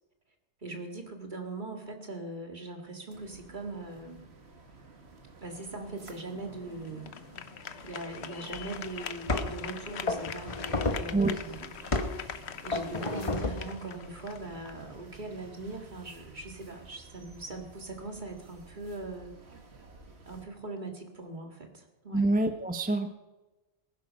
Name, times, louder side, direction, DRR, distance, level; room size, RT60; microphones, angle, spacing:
voice 1, 0.6-4.2 5.4-7.1 7.8-11.7 12.1-19.3 20.3-22.2, right 2 dB, 45° right, 3 dB, 2.1 m, -41 dB
sound 1, 3.1-20.5, right 3 dB, 70° right, 1.9 m, -53 dB
sound 2, 5.5-15.6, left 8 dB, 70° left, 1.0 m, -43 dB
sound 3, 8.5-8.6 9.3-9.6 10.1-11.2 11.9-12.2 12.7-13.7, left 2 dB, 30° left, 1.0 m, -31 dB
voice 2, 22.1-23.1, right 2 dB, 10° right, 7 dB, 0.7 m, -26 dB
19.5 x 11.0 x 5.3 m, 1.1 s
omnidirectional pair, 1.2 m